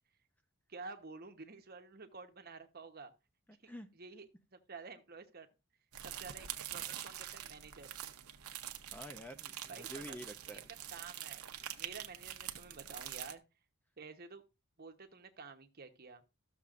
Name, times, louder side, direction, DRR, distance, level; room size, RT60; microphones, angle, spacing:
voice 1, 0.7-3.1 3.6-3.7 4.0-5.5 6.0-8.0 9.7-10.2 10.5-13.4 14.0-14.4 14.8-16.2, right 4 dB, 45° right, 1.0 m, -51 dB
sound 1, 5.9-13.3, right 11 dB, 85° right, 0.8 m, -45 dB
voice 2, 8.9-10.7, equal, 10° left, 0.5 m, -48 dB
13.5 x 6.9 x 2.5 m
head